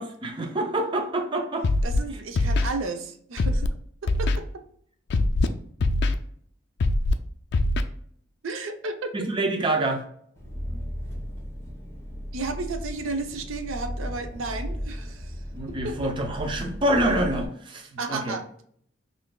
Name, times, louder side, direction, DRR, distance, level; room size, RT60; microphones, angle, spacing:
voice 1, 0.0-1.7 2.1-2.2 9.1-10.0 15.5-18.4, right 1 dB, 25° right, 2 dB, 0.5 m, -26 dB
Scratching (performance technique), 1.6-2.0 2.4-2.7 3.4-3.7 4.1-4.4 5.1-5.5 5.8-6.1 6.8-7.1 7.5-7.8, left 2 dB, 55° left, 0.3 m, -22 dB
voice 2, 1.8-3.7 4.0-4.4 8.4-9.1 12.3-15.3 15.8-16.0 18.0-18.5, right 3 dB, 90° right, 7 dB, 0.6 m, -33 dB
Engine, 10.4-17.4, equal, 15° left, 1.3 m, -35 dB
5.8 x 2.5 x 2.2 m, 0.64 s
head